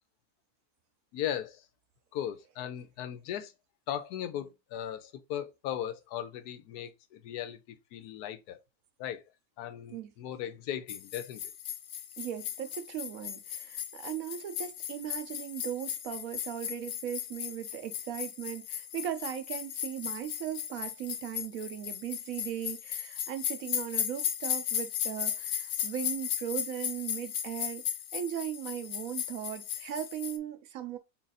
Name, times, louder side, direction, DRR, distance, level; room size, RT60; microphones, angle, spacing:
voice 1, 1.1-1.6 2.1-3.5 3.9-8.6 9.0-9.2 9.6-11.5, left 10 dB, 85° left, 1.2 m, -37 dB
sound 1, 10.9-30.4, left 10 dB, 65° left, 0.7 m, -36 dB
voice 2, 12.2-27.8 28.1-31.0, right 10 dB, 70° right, 1.0 m, -38 dB
4.0 x 2.5 x 4.0 m
omnidirectional pair, 1.6 m